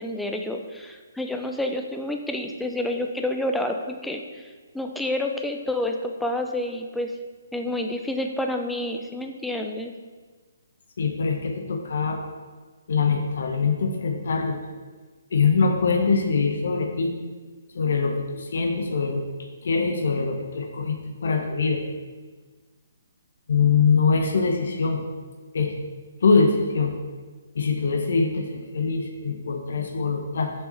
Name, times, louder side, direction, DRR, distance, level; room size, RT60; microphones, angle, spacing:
voice 1, 0.0-7.1 7.5-9.9, left 1 dB, 5° left, 3 dB, 0.6 m, -29 dB
voice 2, 11.0-12.2 12.9-14.6 15.3-17.1 17.7-21.8 23.5-25.0 25.5-25.7 26.2-26.9 27.5-30.5, left 4 dB, 60° left, 3 dB, 1.0 m, -23 dB
7.2 x 7.1 x 4.2 m, 1.4 s
figure-of-eight pair, 135°, 0 cm